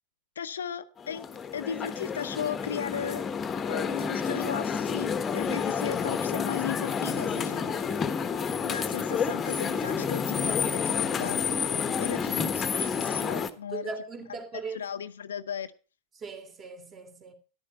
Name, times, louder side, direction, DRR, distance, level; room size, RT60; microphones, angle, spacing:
voice 1, 0.4-3.3 3.6-8.0 8.6-11.6 12.0-13.9 14.7-15.7, left 8 dB, 65° left, 0.8 m, -36 dB
sound 1, 1.0-13.5, left 6 dB, 20° left, 1.3 m, -29 dB
voice 2, 13.7-14.8 16.2-17.3, right 4 dB, 25° right, 3.0 m, -39 dB
13.5 x 12.0 x 4.3 m
figure-of-eight pair, 90°, 0 cm